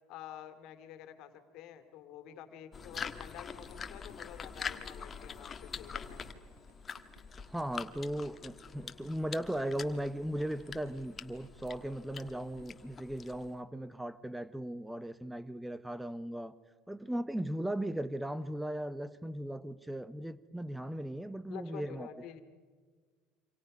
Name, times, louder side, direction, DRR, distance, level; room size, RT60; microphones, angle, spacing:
voice 1, 0.1-6.3 21.5-22.4, left 10 dB, 65° left, 2.3 m, -49 dB
sound 1, 2.7-13.6, left 6 dB, 30° left, 1.5 m, -45 dB
Fireworks, 3.5-13.0, right 4 dB, 90° right, 4.0 m, -64 dB
voice 2, 7.5-16.6 16.9-22.1, right 1 dB, 5° right, 0.9 m, -37 dB
28.0 x 26.0 x 5.4 m
supercardioid pair, 90°, 0 cm